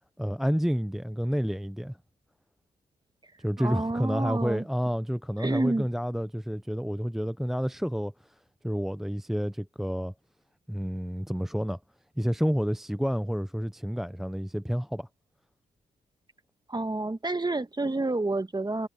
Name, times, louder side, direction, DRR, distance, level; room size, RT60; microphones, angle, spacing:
voice 1, 0.2-2.0 3.4-8.1 8.6-10.1 10.7-11.8 12.2-15.1, equal, ahead, 0.6 m, -29 dB
voice 2, 3.6-4.6 5.4-5.9 16.7-18.9, right 2 dB, 25° right, 1.7 m, -29 dB
supercardioid pair, 50°, 18 cm